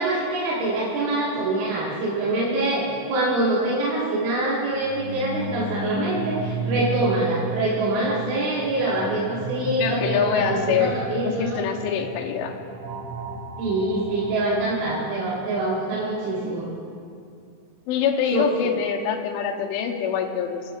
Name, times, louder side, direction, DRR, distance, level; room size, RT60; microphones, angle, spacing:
voice 1, 0.0-11.6 13.6-16.7 18.3-18.7, right 2 dB, 90° right, -8 dB, 4.2 m, -25 dB
sound 1, 4.7-16.6, right 2 dB, 50° right, 2.9 m, -34 dB
voice 2, 9.8-11.0 11.3-12.6 17.9-20.6, left 7 dB, 90° left, 2 dB, 3.3 m, -25 dB
28.0 x 11.0 x 2.4 m, 2.4 s
omnidirectional pair, 5.3 m